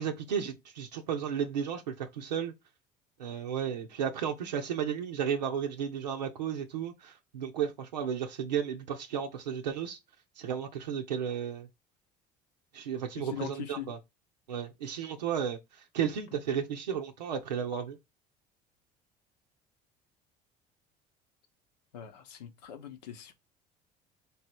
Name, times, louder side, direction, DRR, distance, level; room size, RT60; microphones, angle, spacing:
voice 1, 0.0-2.5 3.2-10.0 10.4-11.7 12.7-14.0 14.5-18.0, right 8 dB, 90° right, 0.6 m, -33 dB
voice 2, 13.3-13.9 21.9-23.3, left 10 dB, 80° left, 0.8 m, -41 dB
3.5 x 3.4 x 4.3 m
hypercardioid pair, 65°, 21 cm